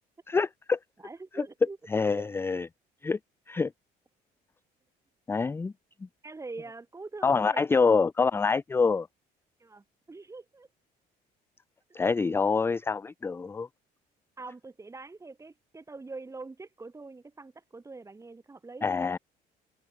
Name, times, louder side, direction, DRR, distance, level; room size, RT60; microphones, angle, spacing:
voice 1, 0.3-0.8 1.4-1.5 1.9-2.7 3.0-3.2 3.5-3.7 5.3-5.7 7.2-9.1 11.9-13.7 18.8-19.2, left 4 dB, 15° left, 0.4 m, -26 dB
voice 2, 1.0-1.8 6.2-7.9 9.6-10.7 14.4-19.1, right 3 dB, 15° right, 2.2 m, -44 dB
cardioid pair, 110°, 17 cm